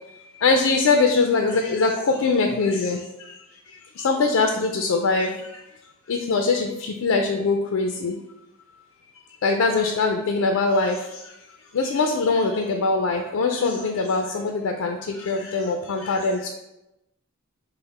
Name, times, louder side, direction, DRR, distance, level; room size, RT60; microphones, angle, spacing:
voice 1, 0.4-3.3 4.0-5.3 6.1-8.2 9.4-11.1 11.7-16.5, left 3 dB, 80° left, 3 dB, 0.4 m, -22 dB
5.6 x 2.1 x 4.1 m, 0.94 s
head